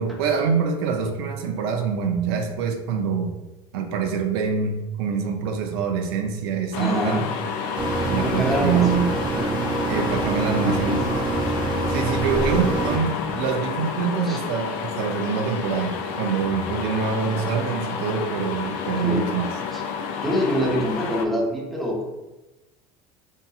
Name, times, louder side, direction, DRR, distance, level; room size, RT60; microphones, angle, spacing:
voice 1, 0.0-3.3 3.7-7.2 8.1-9.1 9.9-11.0 11.9-19.5, right 6 dB, 90° right, 5 dB, 0.4 m, -25 dB
sound 1, 6.7-21.3, left 6 dB, 75° left, 0.4 m, -30 dB
voice 2, 6.8-7.3 8.2-9.5 10.6-11.2 14.2-14.4 18.8-19.3 19.7-19.8 20.2-22.0, equal, ahead, -3 dB, 0.7 m, -26 dB
sound 2, 7.8-13.0, right 3 dB, 35° right, 0.5 m, -26 dB
2.6 x 2.6 x 2.3 m, 1.0 s
supercardioid pair, 105°, 13 cm